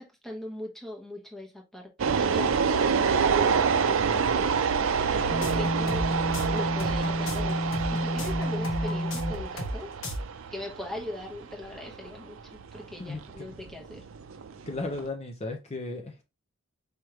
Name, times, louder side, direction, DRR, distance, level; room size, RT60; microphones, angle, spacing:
voice 1, 0.0-4.6 5.1-6.0 6.5-7.6 7.9-9.9 10.5-14.0, left 1 dB, ahead, 1.0 m, -40 dB
sound 1, 2.0-15.1, right 6 dB, 70° right, 0.5 m, -28 dB
sound 2, 5.2-9.8 10.0-10.2, left 1 dB, 70° left, 1.3 m, -30 dB
voice 2, 13.0-13.5 14.7-16.2, left 2 dB, 30° left, 0.6 m, -35 dB
4.9 x 3.1 x 3.1 m
head